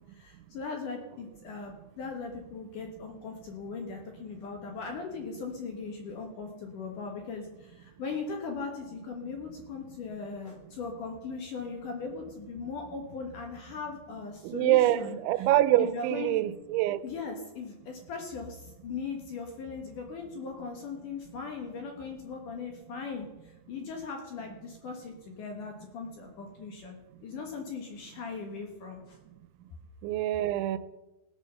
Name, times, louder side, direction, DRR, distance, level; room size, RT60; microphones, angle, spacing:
voice 1, 0.1-15.5 15.8-16.4 17.0-27.0 27.2-29.2, left 4 dB, 65° left, 2.2 m, -39 dB
voice 2, 14.4-15.0 15.2-17.0 30.0-30.8, right 14 dB, 90° right, 3.0 m, -25 dB
17.5 x 6.3 x 6.7 m
omnidirectional pair, 5.2 m